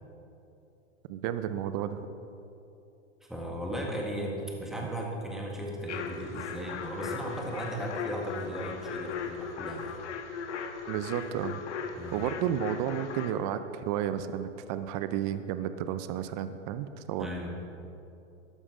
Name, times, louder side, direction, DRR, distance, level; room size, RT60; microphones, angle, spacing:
voice 1, 1.1-2.1 10.9-11.6 12.1-17.3, right 10 dB, 35° right, 11 dB, 0.6 m, -32 dB
voice 2, 3.3-10.0 11.9-12.2 17.2-17.7, equal, ahead, -2 dB, 1.9 m, -36 dB
sound 1, 5.9-13.3, left 6 dB, 70° left, 1.5 m, -38 dB
13.0 x 11.5 x 5.0 m, 2.8 s
hypercardioid pair, 130°, 37 cm